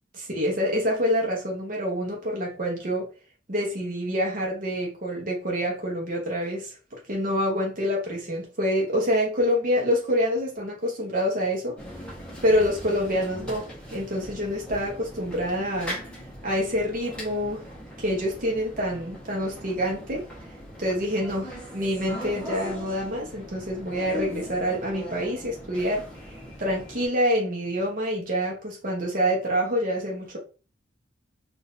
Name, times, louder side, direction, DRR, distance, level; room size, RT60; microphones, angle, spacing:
voice 1, 0.2-3.1 3.5-11.8 12.4-16.0 16.4-17.6 18.0-20.2 20.8-26.1 26.6-30.4, equal, 45° right, -1 dB, 1.0 m, -26 dB
sound 1, 11.8-27.1, left 1 dB, 5° left, 1.2 m, -39 dB
3.9 x 2.6 x 2.6 m, 0.34 s
head